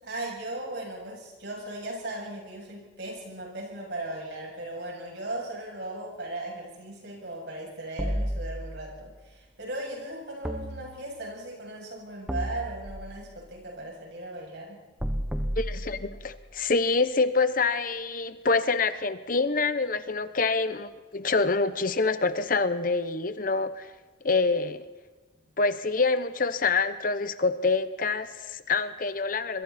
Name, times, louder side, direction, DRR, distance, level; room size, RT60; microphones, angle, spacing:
voice 1, 0.0-14.8, right 2 dB, 60° right, -1 dB, 8.0 m, -37 dB
sound 1, 8.0-9.1 10.4-11.4 12.3-13.4 15.0-16.4, equal, 5° right, 1.3 m, -33 dB
voice 2, 15.6-23.9 24.2-24.9 25.6-29.6, left 4 dB, 45° left, 12 dB, 0.9 m, -26 dB
27.0 x 22.5 x 4.3 m, 1.3 s
head